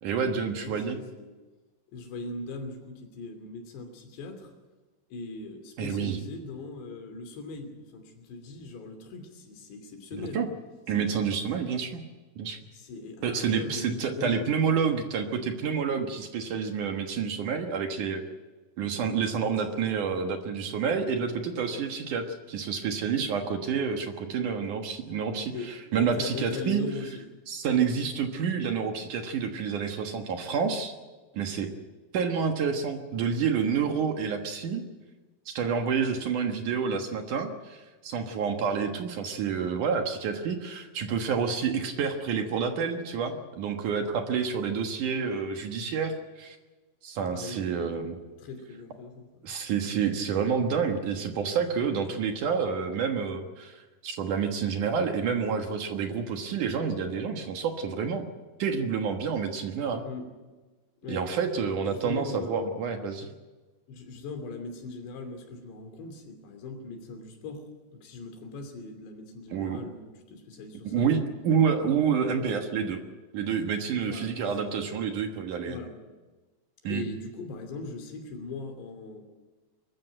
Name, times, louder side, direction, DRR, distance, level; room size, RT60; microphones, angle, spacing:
voice 1, 0.0-1.0 5.8-6.2 10.3-10.5 10.9-12.0 12.4-12.6 13.2-18.2 18.8-25.5 25.9-26.8 27.5-30.9 31.3-31.7 32.1-34.8 35.5-46.6 47.0-48.2 49.4-58.2 58.6-60.0 61.1-63.3 69.5-69.8 70.8-73.0 73.3-75.8 76.8-77.0, right 6 dB, 60° right, 5 dB, 2.3 m, -28 dB
voice 2, 0.6-1.4 1.9-4.5 5.1-10.5 10.9-11.1 12.7-14.5 19.2-19.5 21.7-21.8 25.5-27.3 47.3-47.9 48.4-49.4 60.0-60.3 61.0-61.3 61.8-62.7 63.9-71.2 74.1-74.6 75.7-76.0 76.9-79.3, left 3 dB, 70° left, 5 dB, 5.0 m, -40 dB
23.0 x 14.0 x 9.1 m, 1.2 s
omnidirectional pair, 5.2 m